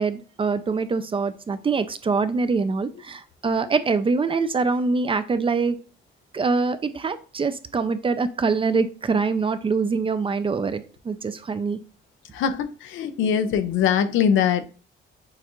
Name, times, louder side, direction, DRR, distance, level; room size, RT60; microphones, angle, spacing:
voice 1, 0.0-5.8 6.3-11.8, right 4 dB, 25° right, 0.4 m, -24 dB
voice 2, 12.3-14.6, left 8 dB, 85° left, 0.6 m, -22 dB
6.4 x 2.4 x 3.0 m
cardioid pair, 90°, 20 cm